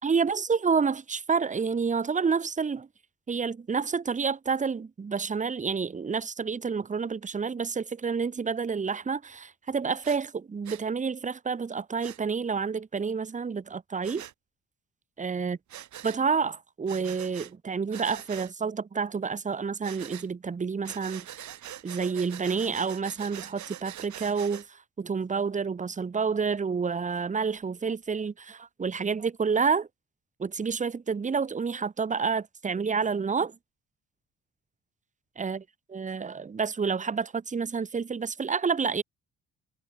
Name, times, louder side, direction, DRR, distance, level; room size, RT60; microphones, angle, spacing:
voice 1, 0.0-2.9 3.3-14.2 15.2-15.6 16.0-21.3 21.8-29.9 30.4-33.6 35.4-35.6 35.9-39.0, right 5 dB, 25° right, 1.0 m, -29 dB
Breathing, 10.0-10.2 10.7-10.8 12.0-12.2 14.0-14.3 15.7-16.2 16.9-17.5 17.9-18.5 19.8-20.3 20.8-24.7, right 12 dB, 70° right, 3.5 m, -43 dB
cardioid pair, 90°, 30 cm